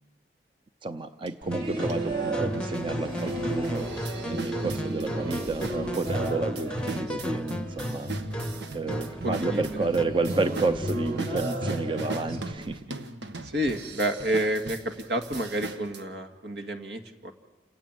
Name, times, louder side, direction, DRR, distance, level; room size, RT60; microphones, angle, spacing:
voice 1, 0.8-3.9 4.2-8.1 8.7-12.8, right 3 dB, 30° right, 9 dB, 0.7 m, -30 dB
sound 1, 1.3-1.4 1.9-2.0 2.5-16.0, right 3 dB, 90° right, 1.4 m, -40 dB
sound 2, 1.4-12.5, right 1 dB, 55° right, 3.5 m, -33 dB
sound 3, 1.5-10.2, left 1 dB, 5° left, 0.8 m, -36 dB
voice 2, 9.2-9.6 13.4-14.8 15.1-17.3, right 1 dB, 70° right, 6 dB, 2.1 m, -29 dB
29.0 x 16.0 x 9.2 m, 1.3 s
head